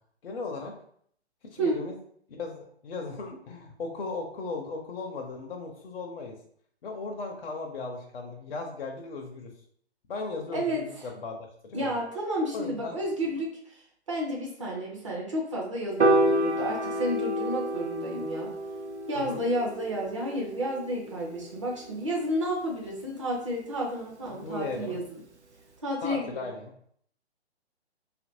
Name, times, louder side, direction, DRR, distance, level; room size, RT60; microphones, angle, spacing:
voice 1, 0.2-0.7 1.4-1.9 2.3-6.4 6.8-9.5 10.1-12.0 12.5-13.0 16.1-16.3 19.1-19.4 24.3-25.0 26.0-26.7, left 3 dB, 60° left, 1 dB, 0.6 m, -37 dB
voice 2, 10.5-10.8 11.7-13.8 14.1-18.5 19.1-25.2 25.8-26.4, equal, 30° right, -2 dB, 0.5 m, -31 dB
Piano, 16.0-22.3, right 1 dB, 85° right, 0.7 m, -29 dB
2.6 x 2.5 x 2.6 m, 0.63 s
figure-of-eight pair, 130°, 33 cm